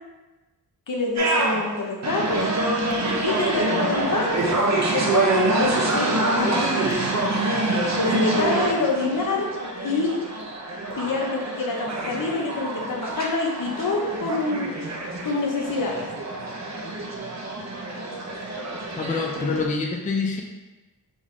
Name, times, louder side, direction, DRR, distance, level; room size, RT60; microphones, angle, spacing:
voice 1, 0.9-2.4 3.2-4.5 4.9-6.1 6.4-6.7 8.0-9.5 9.8-10.2 11.0-14.7 15.2-16.1, left 3 dB, 55° left, 0 dB, 0.9 m, -26 dB
sound 1, 1.2-19.7, right 2 dB, 45° right, 0.8 m, -26 dB
voice 2, 19.0-20.4, left 4 dB, 20° left, 0 dB, 0.5 m, -26 dB
4.1 x 3.0 x 3.7 m, 1.2 s
cardioid pair, 50°, 38 cm